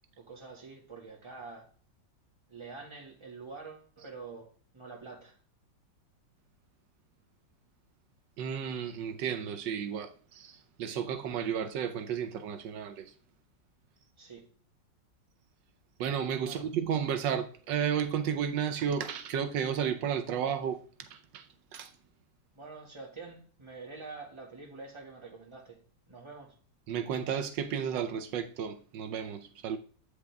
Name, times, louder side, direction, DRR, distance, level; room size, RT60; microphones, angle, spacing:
voice 1, 0.2-1.7 2.5-5.4 14.2-14.5 16.4-16.7 22.5-26.6, right 4 dB, 15° right, 1.8 m, -46 dB
voice 2, 8.4-13.0 16.0-20.8 21.1-21.4 21.7-21.9 26.9-29.8, right 8 dB, 80° right, 1.4 m, -33 dB
8.5 x 5.1 x 3.4 m
omnidirectional pair, 2.0 m